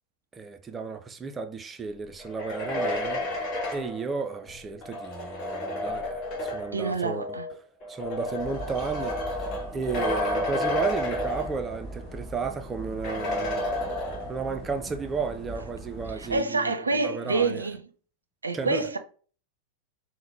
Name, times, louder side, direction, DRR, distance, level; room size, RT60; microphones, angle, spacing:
voice 1, 0.3-7.4 7.9-13.7 14.3-17.6 18.5-18.9, right 5 dB, 20° right, 0.3 m, -33 dB
sound 1, 2.2-6.9 7.8-12.0 12.3-12.4 13.0-14.6, left 1 dB, 35° left, 0.9 m, -31 dB
sound 2, 6.0-6.5 7.0-7.5 8.0-8.5 9.0-9.5 10.0-10.5, left 5 dB, 65° left, 0.5 m, -37 dB
voice 2, 6.7-7.5 16.2-17.8 18.4-19.0, right 3 dB, 75° right, 0.4 m, -27 dB
sound 3, 8.4-16.4, right 1 dB, 15° left, 1.5 m, -41 dB
3.6 x 2.1 x 3.1 m
figure-of-eight pair, 90°, 0 cm